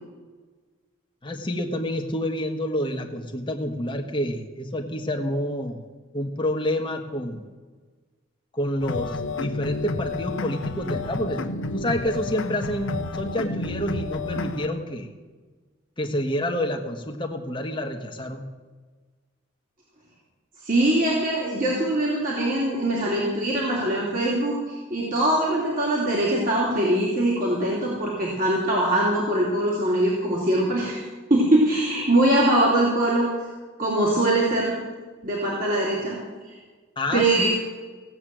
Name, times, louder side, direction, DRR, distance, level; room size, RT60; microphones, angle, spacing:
voice 1, 1.2-5.8 6.1-7.4 8.5-15.1 16.0-18.4 37.0-37.5, left 1 dB, 25° left, 3 dB, 1.4 m, -28 dB
sound 1, 8.8-14.7, left 3 dB, 75° left, 0.9 m, -30 dB
voice 2, 20.6-31.0 31.3-33.3 33.8-34.7 35.2-36.2 36.5-36.6 37.1-37.5, right 1 dB, 40° right, -5 dB, 3.1 m, -22 dB
16.5 x 8.6 x 7.6 m, 1.4 s
head